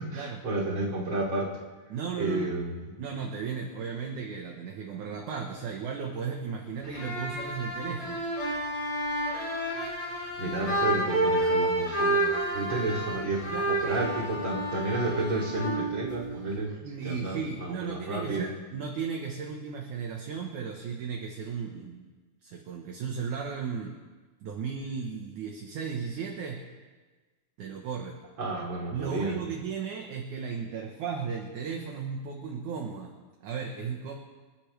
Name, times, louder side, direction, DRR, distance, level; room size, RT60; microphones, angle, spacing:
voice 1, 0.0-1.6 2.2-2.9 10.4-16.7 17.0-18.5 28.4-29.4, right 2 dB, 30° right, -3 dB, 3.4 m, -31 dB
voice 2, 1.9-2.5 3.0-8.3 13.5-13.7 16.8-22.0 22.4-24.0 24.4-26.6 27.6-28.2 28.9-33.1 33.4-34.1, right 6 dB, 60° right, 1 dB, 2.4 m, -35 dB
sound 1, 6.8-16.6, right 1 dB, 15° left, 4.4 m, -30 dB
27.0 x 12.5 x 3.4 m, 1.3 s
omnidirectional pair, 4.5 m